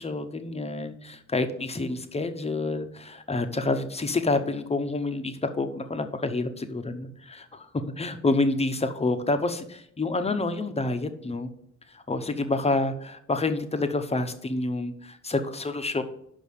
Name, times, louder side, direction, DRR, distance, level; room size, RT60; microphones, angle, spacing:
voice 1, 0.0-7.7 8.0-11.5 11.9-16.0, left 2 dB, 20° left, 9 dB, 0.9 m, -28 dB
5.5 x 5.4 x 6.6 m, 0.71 s
cardioid pair, 90°, 30 cm